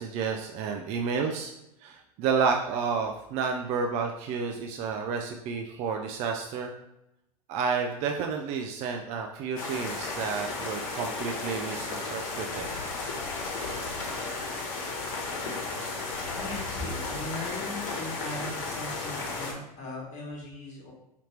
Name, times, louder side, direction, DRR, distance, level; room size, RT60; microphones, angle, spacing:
voice 1, 0.0-1.5 1.8-6.7 7.5-12.7, right 5 dB, 35° right, 3 dB, 0.5 m, -30 dB
sound 1, 9.6-19.5, left 3 dB, 55° left, 1.3 m, -34 dB
voice 2, 16.3-20.9, left 2 dB, 40° left, -2 dB, 1.4 m, -38 dB
5.0 x 2.8 x 3.3 m, 0.86 s
figure-of-eight pair, 90°, 20 cm